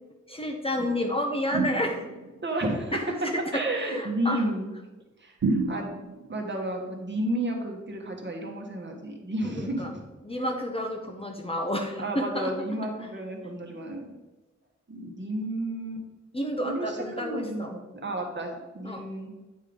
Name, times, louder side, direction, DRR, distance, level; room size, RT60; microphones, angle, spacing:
voice 1, 0.3-2.0 2.9-4.4 9.5-9.9 10.2-12.5 16.3-17.7 18.8-19.0, equal, 20° left, 2 dB, 0.8 m, -30 dB
sound 1, 1.5-2.4 5.4-6.3, right 3 dB, 65° right, 0.8 m, -28 dB
voice 2, 2.4-3.0 3.5-4.7 5.2-5.9 6.3-10.0 12.0-14.1 14.9-16.0 16.6-19.3, right 1 dB, 40° right, 1 dB, 1.3 m, -32 dB
9.1 x 3.8 x 5.0 m, 1.1 s
wide cardioid pair, 135°, 29 cm